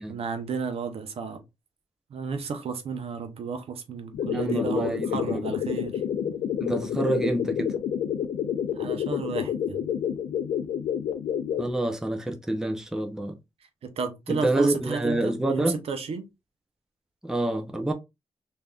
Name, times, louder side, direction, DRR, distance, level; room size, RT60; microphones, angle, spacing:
voice 1, 0.1-1.4 2.1-6.0 8.7-9.8 13.8-16.2, right 5 dB, 60° right, 0.6 m, -32 dB
sound 1, 4.1-11.7, left 9 dB, 80° left, 0.4 m, -29 dB
voice 2, 4.3-5.5 6.6-7.7 11.6-13.4 14.3-15.8 17.2-17.9, right 1 dB, 5° right, 0.5 m, -27 dB
3.4 x 2.7 x 2.3 m
wide cardioid pair, 130°, 11 cm